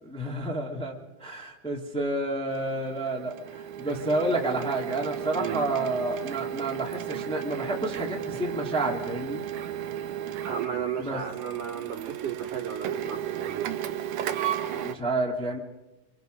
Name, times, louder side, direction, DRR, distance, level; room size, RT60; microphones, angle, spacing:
voice 1, 0.0-9.4 11.0-11.2 14.7-15.6, right 2 dB, ahead, -1 dB, 2.0 m, -30 dB
Printer, 2.5-14.9, right 10 dB, 70° right, 2.1 m, -34 dB
voice 2, 10.4-13.7, right 8 dB, 85° right, -2 dB, 5.0 m, -33 dB
27.0 x 25.5 x 5.3 m, 1.0 s
omnidirectional pair, 3.7 m